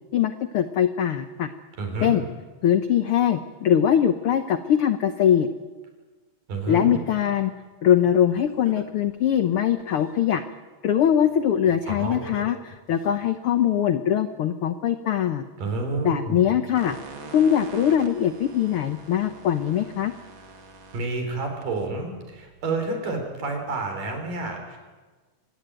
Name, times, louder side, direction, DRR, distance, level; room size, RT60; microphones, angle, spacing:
voice 1, 0.1-1.5 2.0-2.2 2.6-5.5 6.7-7.5 7.8-10.4 10.8-15.4 16.0-16.9 17.3-20.1, left 9 dB, 90° left, 9 dB, 1.2 m, -22 dB
voice 2, 1.8-2.2 6.5-7.0 11.9-12.3 15.6-16.5 20.9-24.8, right 3 dB, 85° right, 4 dB, 5.7 m, -29 dB
Laughter, 8.1-8.2 8.6-10.1 11.9-13.1, left 2 dB, 35° left, 1.1 m, -40 dB
sound 1, 16.7-22.8, right 4 dB, 40° right, 2.5 m, -45 dB
25.5 x 19.0 x 9.0 m, 1.3 s
omnidirectional pair, 3.8 m